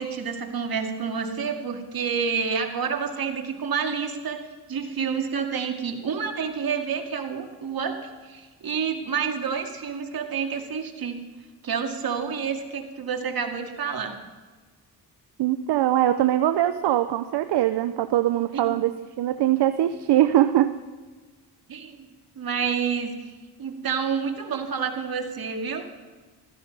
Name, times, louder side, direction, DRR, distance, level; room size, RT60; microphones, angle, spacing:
voice 1, 0.0-11.2 11.6-14.2 18.5-18.8 21.7-22.1 22.4-23.3 23.6-25.9, right 6 dB, 60° right, 4 dB, 2.3 m, -29 dB
voice 2, 15.4-20.7, right 12 dB, 75° right, 10 dB, 0.7 m, -22 dB
15.5 x 14.0 x 5.4 m, 1.3 s
cardioid pair, 65°, 41 cm